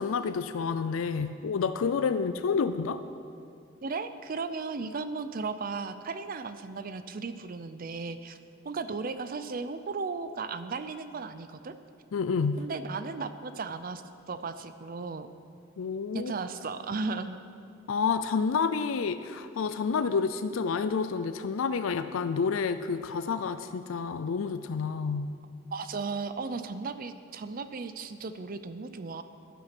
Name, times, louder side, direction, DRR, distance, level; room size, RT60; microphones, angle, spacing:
voice 1, 0.0-3.0 12.1-12.7 15.8-16.3 17.9-25.3, left 5 dB, 90° left, 11 dB, 0.4 m, -29 dB
voice 2, 3.8-8.4 8.6-11.7 12.6-14.0 14.3-15.3 16.1-17.4 25.7-29.2, right 4 dB, 45° right, 11 dB, 0.5 m, -35 dB
11.5 x 10.0 x 6.0 m, 2.4 s
head